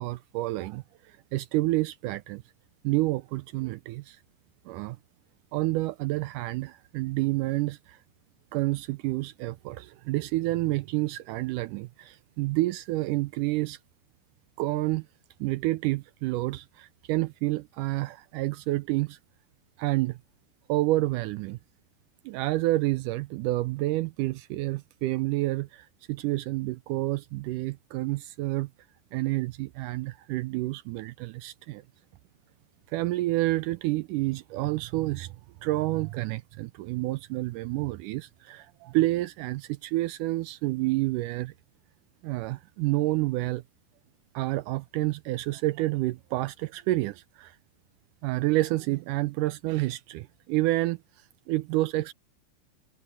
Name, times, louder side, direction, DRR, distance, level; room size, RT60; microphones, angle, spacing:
voice 1, 0.0-2.4 2.8-4.2 4.6-5.0 5.5-8.0 8.5-13.8 14.6-15.1 15.4-19.2 19.8-20.2 20.7-21.6 22.2-28.7 29.1-31.8 32.9-35.4 35.6-41.5 42.2-43.6 44.3-47.6 48.2-51.0 51.5-52.1, right 18 dB, 85° right, 1.8 m, -29 dB
omnidirectional pair, 4.3 m